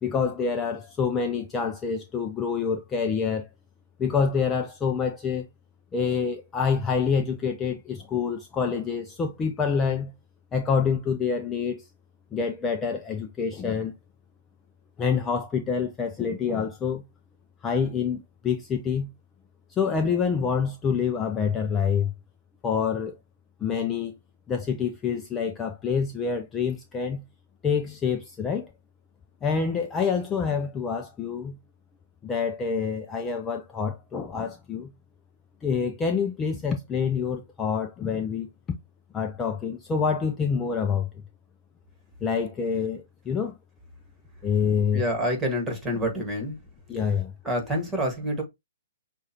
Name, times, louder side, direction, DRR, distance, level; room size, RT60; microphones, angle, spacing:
voice 1, 0.0-3.5 4.0-5.5 5.9-10.1 10.5-11.9 12.3-13.9 15.0-17.0 17.6-19.1 19.7-22.1 22.6-23.1 23.6-24.1 24.5-27.2 27.6-28.7 29.4-31.6 32.2-34.9 35.6-38.5 39.1-41.1 42.2-43.6 44.4-45.0 46.9-47.3, left 6 dB, 15° left, 0.6 m, -27 dB
voice 2, 44.9-46.5 47.4-48.4, equal, 15° right, 1.8 m, -27 dB
6.3 x 2.5 x 3.0 m
hypercardioid pair, 130°, 0 cm